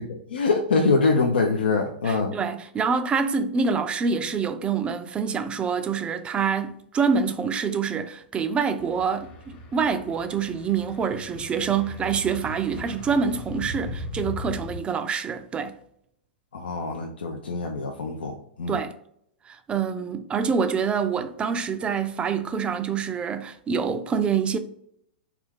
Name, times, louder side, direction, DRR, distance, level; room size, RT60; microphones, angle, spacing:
voice 1, 0.0-2.4 16.5-18.8, left 4 dB, 85° left, 0.4 m, -24 dB
voice 2, 2.0-15.7 18.7-18.9 19.5-24.6, right 6 dB, 20° right, 0.3 m, -26 dB
sound 1, 8.8-14.8, left 1 dB, 40° left, 0.9 m, -38 dB
3.3 x 2.3 x 3.4 m
hypercardioid pair, 115°, 5 cm